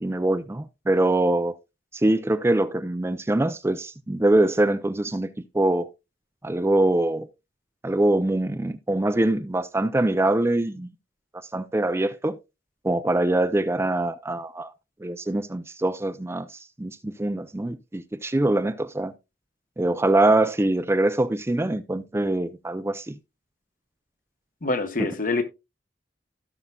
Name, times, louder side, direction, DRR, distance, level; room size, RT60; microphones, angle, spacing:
voice 1, 0.0-1.6 2.0-5.3 5.5-5.9 6.4-7.3 7.8-10.9 11.5-12.4 12.8-14.7 15.0-16.5 16.8-19.1 19.8-23.2, right 1 dB, 15° right, 0.5 m, -23 dB
voice 2, 24.6-25.4, left 3 dB, 50° left, 1.2 m, -25 dB
16.5 x 5.6 x 2.3 m
head